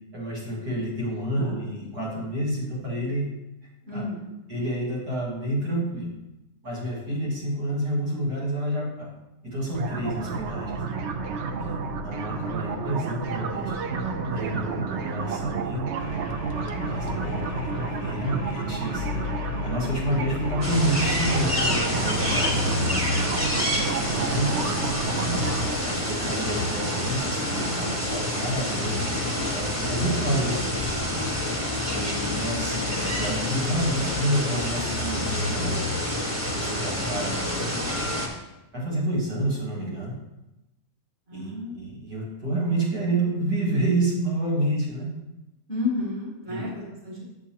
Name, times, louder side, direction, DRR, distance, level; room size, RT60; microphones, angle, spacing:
voice 1, 0.1-3.3 3.9-4.0 4.5-6.1 6.6-9.1 9.4-10.8 11.6-13.7 14.2-15.8 16.7-19.3 19.6-22.8 23.8-24.9 25.2-25.5 25.8-30.9 31.9-35.8 36.5-38.0 38.7-40.2 41.3-45.1 46.5-46.7, right 1 dB, 80° right, -6 dB, 2.5 m, -29 dB
voice 2, 1.3-1.7 3.9-4.4 17.1-17.6 41.3-41.8 45.7-47.4, left 2 dB, 40° right, -5 dB, 2.3 m, -32 dB
sound 1, 9.7-25.7, right 4 dB, 65° right, 0.7 m, -30 dB
sound 2, 16.0-22.9, left 8 dB, 65° left, 0.8 m, -37 dB
sound 3, 20.6-38.3, left 1 dB, 10° right, 1.0 m, -27 dB
8.1 x 7.3 x 2.9 m, 0.95 s
omnidirectional pair, 1.7 m